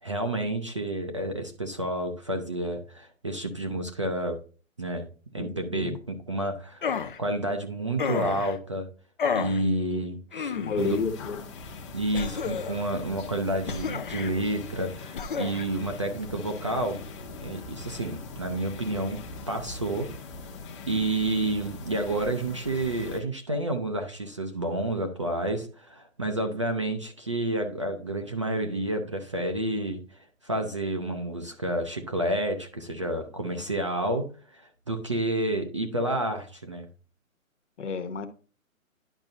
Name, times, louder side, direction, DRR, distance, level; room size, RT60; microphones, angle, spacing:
voice 1, 0.0-4.4 4.8-5.1 5.3-8.9 9.3-11.0 11.9-17.0 17.4-20.1 20.9-36.9, right 1 dB, 25° right, 0.5 m, -30 dB
voice 2, 5.4-6.0 9.6-10.0 10.5-11.4 33.5-33.6 37.8-38.3, left 4 dB, 55° left, 1.3 m, -31 dB
sound 1, 6.8-7.2 8.0-8.6 9.2-9.6 10.3-11.0 12.1-12.8 13.7-14.3 15.1-15.6, left 6 dB, 40° left, 0.6 m, -31 dB
sound 2, 10.8-23.2, left 3 dB, 20° left, 1.0 m, -42 dB
10.5 x 5.3 x 2.6 m
hypercardioid pair, 150°, 41 cm